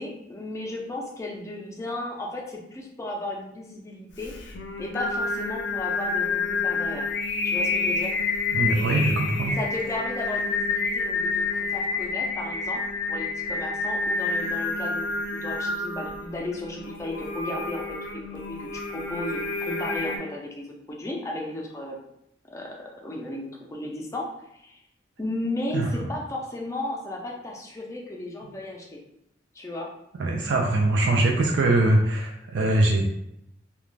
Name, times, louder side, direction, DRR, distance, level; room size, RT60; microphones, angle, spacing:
voice 1, 0.0-4.3 4.8-7.1 7.4-8.1 9.5-12.8 13.1-22.1 22.5-24.8 25.2-29.0 29.5-29.9, left 1 dB, 15° left, -1 dB, 0.4 m, -34 dB
Singing, 4.2-20.2, left 4 dB, 80° left, 0.4 m, -29 dB
voice 2, 8.5-9.5 25.7-25.9 30.2-33.1, right 2 dB, 80° right, 0 dB, 0.4 m, -22 dB
2.4 x 2.2 x 3.1 m, 0.80 s
head